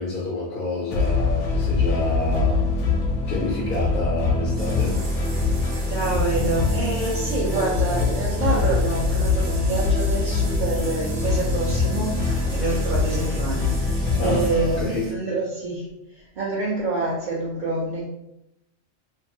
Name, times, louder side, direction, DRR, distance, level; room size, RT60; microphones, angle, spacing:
voice 1, 0.0-2.7 3.3-5.0 14.2-14.4 14.8-15.2, left 3 dB, 60° left, -4 dB, 0.7 m, -28 dB
sound 1, 0.9-14.8, left 3 dB, 85° left, 0.9 m, -23 dB
sound 2, 4.6-15.1, right 2 dB, 80° right, 1.0 m, -40 dB
voice 2, 5.9-18.1, right 2 dB, 50° right, -8 dB, 0.7 m, -27 dB
2.6 x 2.4 x 2.7 m, 0.87 s
omnidirectional pair, 1.2 m